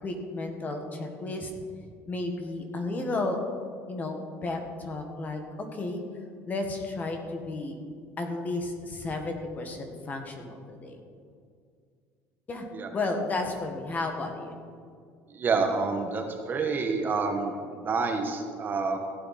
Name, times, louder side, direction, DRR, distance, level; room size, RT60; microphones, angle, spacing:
voice 1, 0.0-1.5 2.1-3.4 3.9-5.4 5.7-6.0 6.5-7.8 8.2-11.0 12.5-14.6, left 2 dB, 30° left, 4 dB, 1.6 m, -33 dB
voice 2, 15.3-19.0, right 4 dB, 35° right, 4 dB, 1.4 m, -28 dB
15.5 x 9.1 x 4.3 m, 2.2 s
cardioid pair, 125°, 6 cm